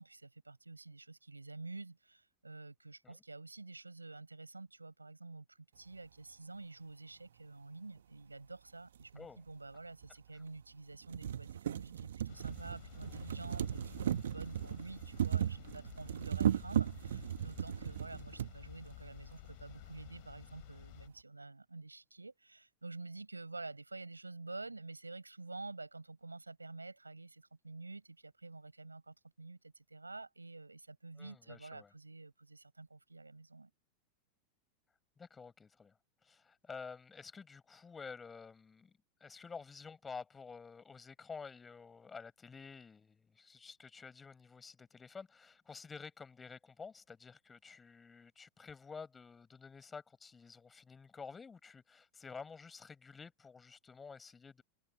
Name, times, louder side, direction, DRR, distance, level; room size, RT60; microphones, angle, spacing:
voice 1, 0.0-33.7, right 3 dB, 90° right, 7.4 m, -49 dB
sound 1, 9.0-9.1 10.0-10.1 10.6-10.7 10.9-18.5 19.4-19.5 19.8-19.9, right 10 dB, 70° right, 1.4 m, -36 dB
sound 2, 12.3-21.1, left 40 dB or more, 50° left, 6.8 m, -53 dB
voice 2, 31.2-31.9 35.2-36.0 36.2-54.6, left 5 dB, 15° left, 6.8 m, -51 dB
figure-of-eight pair, 90°, 0 cm